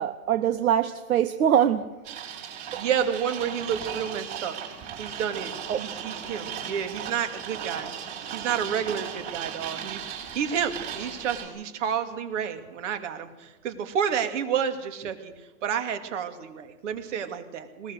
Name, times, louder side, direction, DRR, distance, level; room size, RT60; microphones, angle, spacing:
voice 1, 0.0-1.9 2.7-2.8 5.7-5.9, right 9 dB, 80° right, 11 dB, 1.0 m, -23 dB
sound 1, 2.0-11.5, right 8 dB, 40° right, 6.1 m, -37 dB
voice 2, 2.8-4.6 5.0-7.9 8.3-15.3 15.6-17.9, right 8 dB, 60° right, 8 dB, 2.6 m, -30 dB
20.5 x 19.5 x 6.6 m, 1.2 s
hypercardioid pair, 135°, 42 cm